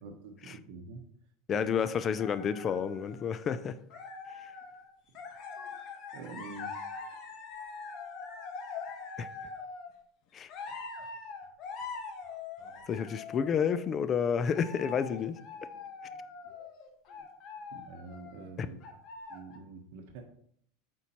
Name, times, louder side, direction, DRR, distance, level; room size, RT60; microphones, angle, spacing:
voice 1, 0.0-1.1 1.5-1.7 6.1-6.8 17.7-18.8 19.3-20.2, right 4 dB, 65° right, 0.9 m, -46 dB
voice 2, 1.5-3.8 9.2-9.3 10.3-10.5 12.9-15.4 18.6-18.7, left 7 dB, 30° left, 0.4 m, -30 dB
sound 1, 2.2-3.6 3.9-4.9 5.2-9.9 10.5-13.8 14.4-18.5 18.8-19.6, left 4 dB, 50° left, 1.1 m, -43 dB
7.9 x 4.4 x 3.0 m
supercardioid pair, 125°, 0 cm